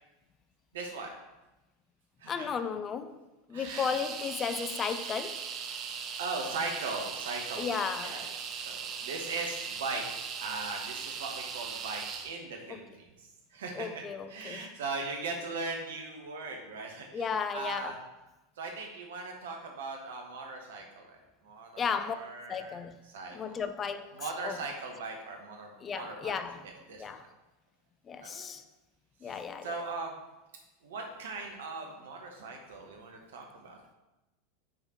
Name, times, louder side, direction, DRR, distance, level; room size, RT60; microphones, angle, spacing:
voice 1, 0.7-1.1 2.2-2.5 3.5-3.9 6.2-8.3 8.6-10.0 10.4-14.0 14.3-18.0 18.6-21.2 21.4-22.8 23.1-23.6 24.1-27.3 28.2-28.5 29.2-30.1 30.8-33.8, right 3 dB, 70° right, 1.2 m, -39 dB
voice 2, 2.3-3.2 3.5-5.4 7.6-8.2 13.8-14.7 17.1-17.9 21.8-22.2 22.5-23.0 23.3-24.6 25.8-26.7 27.0-27.2 28.1-28.6 29.2-29.7, left 6 dB, 25° left, 0.4 m, -34 dB
sound 1, 3.6-12.3, right 6 dB, 40° right, 0.7 m, -39 dB
6.5 x 4.2 x 4.3 m
figure-of-eight pair, 85°, 0 cm